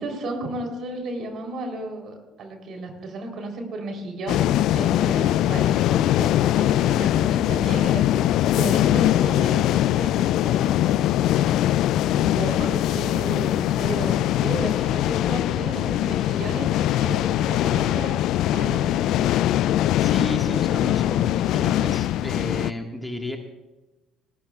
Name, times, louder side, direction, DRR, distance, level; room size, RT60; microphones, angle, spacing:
voice 1, 0.0-8.1 8.5-11.0 11.6-18.2 18.5-19.3, right 2 dB, 50° right, 3 dB, 3.5 m, -34 dB
sound 1, 4.3-22.7, left 13 dB, 60° left, 0.3 m, -22 dB
voice 2, 20.0-23.4, left 1 dB, 5° left, 3 dB, 1.7 m, -32 dB
18.0 x 15.5 x 2.4 m, 1.1 s
hypercardioid pair, 60°, 0 cm